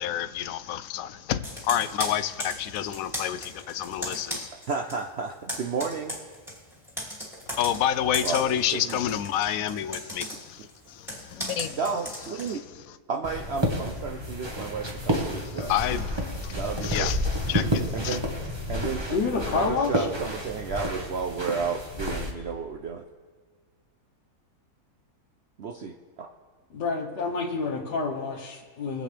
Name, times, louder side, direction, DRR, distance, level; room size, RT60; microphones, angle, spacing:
voice 1, 0.0-4.5 7.5-11.8 12.5-12.6 15.3-18.2, left 11 dB, 70° left, 0.9 m, -29 dB
Computer keyboard, 1.4-5.0 5.3-12.6, equal, ahead, 2.5 m, -37 dB
voice 2, 4.7-6.2 8.2-9.0 11.8-12.6 13.1-15.7 16.5-17.1 17.9-18.2 18.7-19.2 19.5-23.0 25.6-26.3, right 5 dB, 65° right, 0.6 m, -32 dB
sound 1, 13.2-22.3, equal, 20° right, 1.1 m, -30 dB
voice 3, 19.1-20.1 26.7-29.0, left 4 dB, 90° left, 1.8 m, -28 dB
23.0 x 7.7 x 3.4 m
omnidirectional pair, 1.7 m